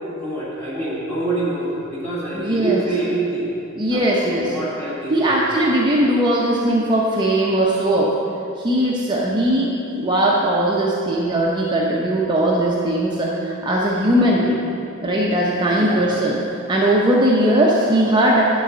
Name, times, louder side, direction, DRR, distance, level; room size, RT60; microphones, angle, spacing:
voice 1, 0.0-3.5 3.9-5.5 15.7-16.1, right 2 dB, 10° left, -9 dB, 1.7 m, -26 dB
voice 2, 2.3-2.9 3.8-4.6 5.1-8.1 8.6-14.6 15.0-16.4 16.7-18.6, right 1 dB, 20° right, -4 dB, 0.7 m, -19 dB
10.0 x 4.0 x 7.0 m, 2.7 s
head